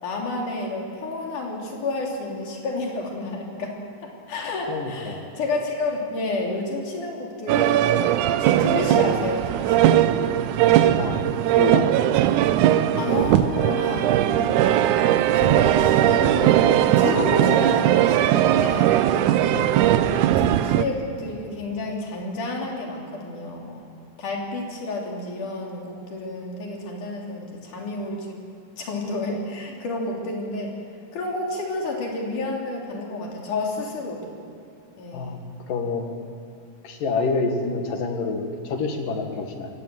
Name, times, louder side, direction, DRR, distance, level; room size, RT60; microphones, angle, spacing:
voice 1, 0.0-3.8 4.0-7.9 8.3-10.0 13.0-14.8 15.4-19.0 20.4-23.8 24.2-28.4 28.8-30.7 31.1-34.3 35.0-35.5, left 2 dB, 70° left, -1 dB, 4.7 m, -30 dB
voice 2, 4.7-5.3 10.8-12.0 19.5-19.7 35.1-35.4 35.7-36.1 36.8-39.7, left 4 dB, 85° left, 4 dB, 3.6 m, -27 dB
sound 1, 7.5-20.8, right 12 dB, 75° right, 2.1 m, -19 dB
22.0 x 17.5 x 7.7 m, 2.7 s
omnidirectional pair, 3.7 m